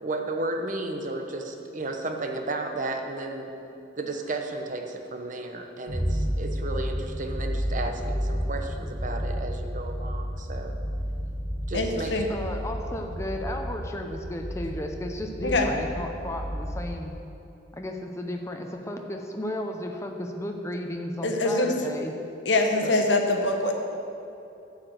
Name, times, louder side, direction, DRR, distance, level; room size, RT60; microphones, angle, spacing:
voice 1, 0.0-3.5 4.0-10.7 11.7-12.3, right 2 dB, 45° right, 4 dB, 0.9 m, -33 dB
sound 1, 5.9-17.1, equal, 45° left, 1.5 m, -31 dB
voice 2, 11.7-12.3 15.4-15.7 21.2-21.7 22.5-23.7, left 2 dB, 70° left, 3 dB, 1.1 m, -24 dB
voice 3, 12.3-17.1 17.7-22.1 22.8-22.9, left 1 dB, 15° left, 3 dB, 0.7 m, -34 dB
11.5 x 4.9 x 7.8 m, 2.8 s
head